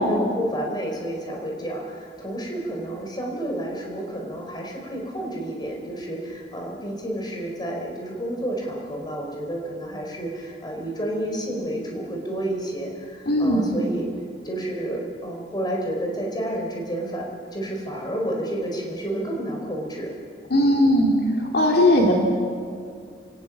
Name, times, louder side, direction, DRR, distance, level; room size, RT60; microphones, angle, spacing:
voice 1, 0.0-14.1 14.4-17.3 17.5-20.1, right 1 dB, 25° left, 0 dB, 4.7 m, -30 dB
voice 2, 13.3-13.7 20.5-22.1, left 1 dB, 65° left, 1 dB, 2.5 m, -19 dB
29.5 x 18.0 x 7.4 m, 2.3 s
head